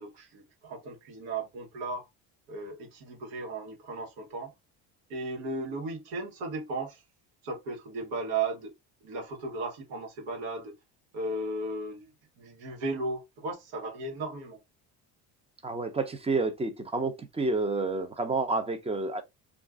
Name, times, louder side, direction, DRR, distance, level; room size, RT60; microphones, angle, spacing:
voice 1, 0.0-2.1 2.5-4.5 5.1-7.0 7.4-8.7 9.0-10.7 11.1-14.6, right 3 dB, 85° right, 1.1 m, -36 dB
voice 2, 15.6-19.2, right 3 dB, 15° right, 0.4 m, -29 dB
2.4 x 2.4 x 3.4 m
cardioid pair, 105°, 46 cm